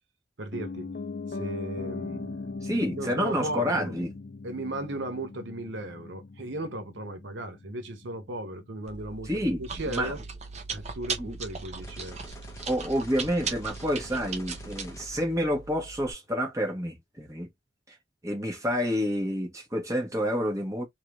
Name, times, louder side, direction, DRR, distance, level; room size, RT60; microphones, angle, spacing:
voice 1, 0.4-0.9 1.3-2.6 2.9-3.9 4.4-10.2 10.7-12.2, right 1 dB, 65° right, 0.8 m, -36 dB
Piano, 0.5-10.5 10.8-10.9, left 3 dB, 40° left, 0.4 m, -40 dB
voice 2, 2.6-4.1 9.2-9.6 9.9-10.1 11.2-11.4 12.7-17.5 18.2-20.8, equal, 15° right, 1.0 m, -29 dB
Chewing mastication, 8.9-16.1, right 5 dB, 35° right, 0.7 m, -38 dB
sound 1, 11.8-16.0, left 1 dB, 15° left, 0.8 m, -48 dB
3.4 x 2.7 x 2.9 m
head